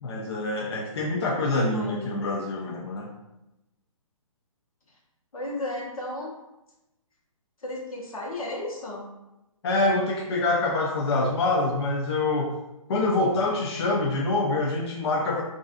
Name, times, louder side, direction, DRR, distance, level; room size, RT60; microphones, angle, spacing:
voice 1, 0.0-3.1 9.6-12.5 12.9-15.4, left 2 dB, 50° left, -1 dB, 0.4 m, -25 dB
voice 2, 1.7-2.2 4.9-5.0 5.3-6.3 7.6-9.1, left 1 dB, 85° left, -2 dB, 0.9 m, -34 dB
2.4 x 2.4 x 2.3 m, 0.95 s
hypercardioid pair, 150°, 18 cm